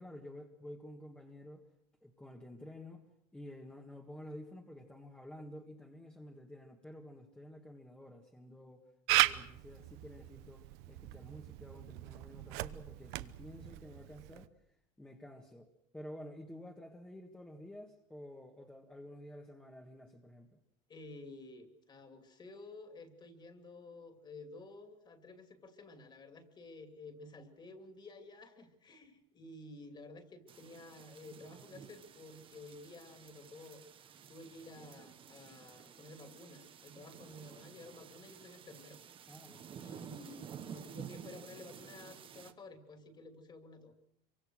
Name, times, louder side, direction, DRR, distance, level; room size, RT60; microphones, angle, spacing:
voice 1, 0.0-1.7 2.0-3.1 3.3-14.5 15.0-20.6 39.3-39.7, left 1 dB, 5° left, 1.7 m, -51 dB
Camera, 9.1-14.5, right 19 dB, 65° right, 1.0 m, -36 dB
voice 2, 20.9-33.8 34.3-39.0 39.8-43.9, left 2 dB, 25° left, 2.8 m, -52 dB
sound 1, 30.5-42.5, right 8 dB, 30° right, 1.3 m, -52 dB
26.0 x 24.0 x 6.4 m
cardioid pair, 150°, 18 cm